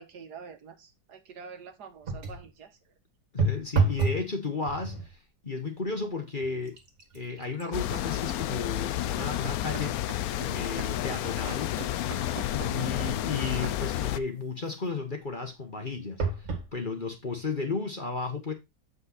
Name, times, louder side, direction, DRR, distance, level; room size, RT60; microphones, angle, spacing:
voice 1, 0.0-2.8, right 5 dB, 70° right, 1.6 m, -46 dB
sound 1, 2.0-2.5 3.4-4.3 4.6-5.1 5.9-6.0 6.4-10.0 10.5-10.6 11.2-14.0 16.2-16.7 17.4-17.5 17.7-17.8, right 3 dB, 45° right, 1.9 m, -32 dB
voice 2, 3.3-5.2 5.4-6.8 7.1-10.0 10.4-11.7 12.5-18.5, left 4 dB, 35° left, 1.1 m, -34 dB
sound 2, 7.7-14.2, left 13 dB, 70° left, 0.9 m, -31 dB
sound 3, 9.2-14.1 14.8-14.9, right 9 dB, 85° right, 1.5 m, -44 dB
7.8 x 5.5 x 4.0 m
omnidirectional pair, 1.9 m